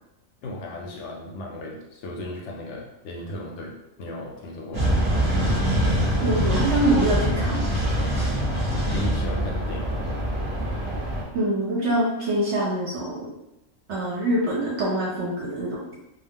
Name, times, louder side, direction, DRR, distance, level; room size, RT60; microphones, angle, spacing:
voice 1, 0.4-3.7 4.0-4.9 8.9-9.9, left 1 dB, 65° left, -1 dB, 0.8 m, -35 dB
sound 1, 4.7-11.2, equal, 25° right, 0.9 m, -24 dB
voice 2, 6.2-7.6 11.3-13.3 13.9-15.9, right 1 dB, 65° right, -4 dB, 0.8 m, -24 dB
2.3 x 2.2 x 3.5 m, 0.90 s
omnidirectional pair, 1.5 m